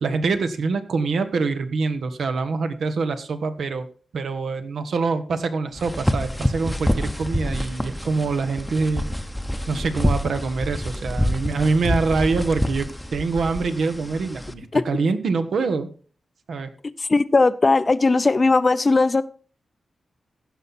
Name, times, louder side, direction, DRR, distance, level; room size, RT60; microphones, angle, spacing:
voice 1, 0.0-3.9 4.1-9.1 9.7-15.9 16.5-16.7, right 4 dB, 75° right, 9 dB, 1.1 m, -25 dB
sound 1, 5.8-14.5, equal, 5° left, 0.8 m, -27 dB
voice 2, 17.1-19.2, left 3 dB, 35° left, 15 dB, 0.5 m, -18 dB
15.5 x 5.7 x 4.2 m, 0.40 s
wide cardioid pair, 100°, 0 cm